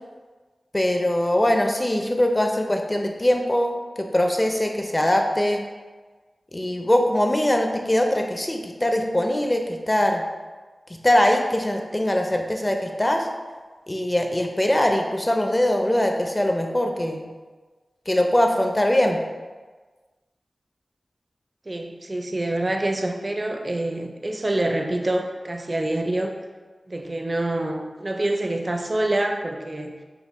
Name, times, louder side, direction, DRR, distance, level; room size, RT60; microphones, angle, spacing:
voice 1, 0.7-5.6 6.5-10.2 10.9-13.3 13.9-17.3 18.1-19.2, left 1 dB, 25° left, 3 dB, 0.5 m, -22 dB
voice 2, 21.7-26.4 26.9-30.0, right 1 dB, 40° right, 3 dB, 0.4 m, -26 dB
5.4 x 2.1 x 3.0 m, 1.4 s
cardioid pair, 45°, 0 cm